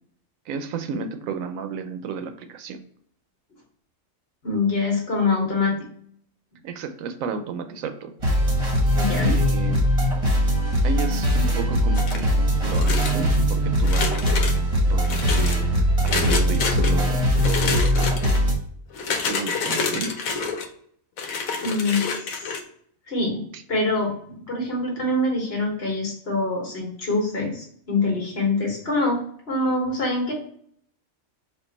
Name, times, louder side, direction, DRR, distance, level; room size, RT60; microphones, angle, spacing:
voice 1, 0.5-2.8 6.6-8.1 9.1-9.8 10.8-12.3 12.6-14.1 14.9-18.3 19.3-20.3 23.5-23.6, right 5 dB, 85° right, 8 dB, 1.0 m, -32 dB
voice 2, 4.4-5.8 8.9-9.3 21.6-22.5 23.1-30.3, left 2 dB, 50° left, -1 dB, 1.5 m, -25 dB
sound 1, 8.2-18.5, equal, 30° right, 1.0 m, -21 dB
sound 2, 12.0-12.3 12.7-13.4 13.8-14.6 15.0-15.6 16.0-16.9 17.4-18.4 18.9-20.7 21.2-22.6, left 4 dB, 85° left, 1.1 m, -28 dB
4.4 x 2.5 x 4.0 m, 0.63 s
omnidirectional pair, 1.4 m